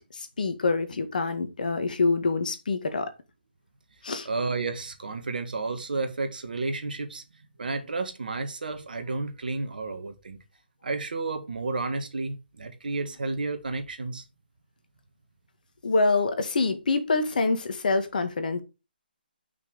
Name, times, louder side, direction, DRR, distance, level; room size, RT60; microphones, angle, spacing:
voice 1, 0.4-3.1 4.0-4.3 15.8-18.6, left 3 dB, 55° left, 1.8 m, -25 dB
voice 2, 4.2-7.2 7.6-10.4 10.8-14.2, right 3 dB, 60° right, 1.9 m, -31 dB
6.1 x 6.0 x 6.3 m
figure-of-eight pair, 150°, 5 cm